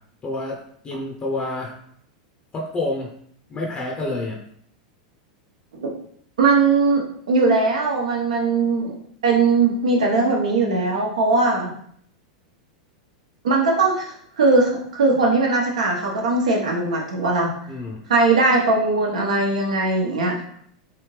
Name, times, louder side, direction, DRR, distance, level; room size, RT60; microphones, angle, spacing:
voice 1, 0.2-0.6 0.8-1.7 2.5-3.1 3.5-4.4 17.7-18.0, left 2 dB, 25° left, 0 dB, 0.6 m, -28 dB
voice 2, 6.4-8.9 9.2-11.7 13.4-17.5 18.1-20.3, right 3 dB, 85° right, -1 dB, 1.0 m, -19 dB
3.3 x 2.7 x 3.2 m, 0.64 s
hypercardioid pair, 110°, 4 cm